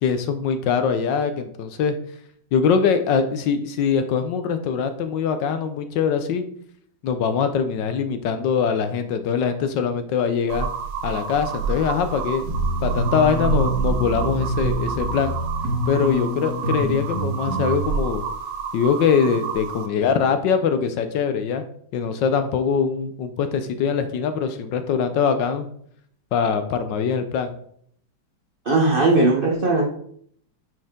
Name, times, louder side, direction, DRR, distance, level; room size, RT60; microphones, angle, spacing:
voice 1, 0.0-1.9 2.5-6.4 7.0-10.7 11.0-15.3 15.9-18.2 18.7-21.6 21.9-25.7 26.3-27.5, left 6 dB, 70° left, 9 dB, 1.2 m, -22 dB
sound 1, 10.5-19.9, right 6 dB, 90° right, 1.7 m, -29 dB
sound 2, 12.5-17.8, right 1 dB, 40° right, 1.5 m, -27 dB
voice 2, 28.6-29.8, right 2 dB, 60° right, 0 dB, 0.5 m, -18 dB
9.0 x 4.6 x 3.6 m, 0.64 s
omnidirectional pair, 2.2 m